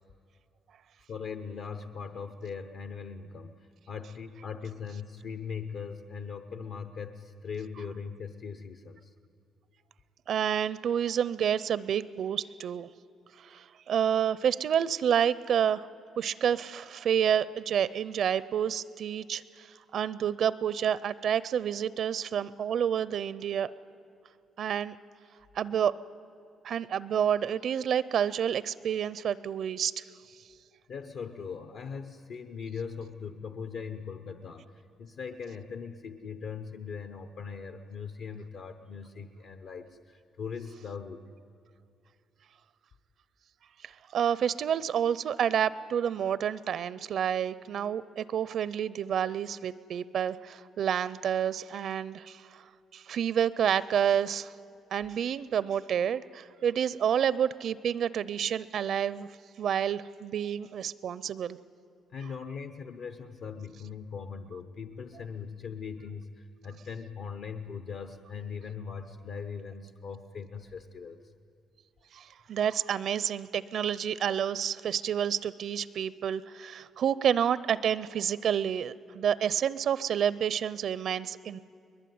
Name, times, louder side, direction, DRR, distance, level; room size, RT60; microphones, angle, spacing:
voice 1, 1.1-9.1 26.4-26.5 30.9-41.2 62.1-71.2, left 6 dB, 60° left, 8 dB, 0.8 m, -40 dB
voice 2, 10.3-12.9 13.4-15.8 16.2-23.7 24.6-25.0 25.5-26.0 26.6-30.0 43.8-52.7 52.9-54.5 54.9-59.3 59.6-61.6 72.1-81.6, right 9 dB, 55° right, 18 dB, 0.5 m, -29 dB
22.0 x 21.0 x 9.4 m, 2.6 s
cardioid pair, 145°, 0 cm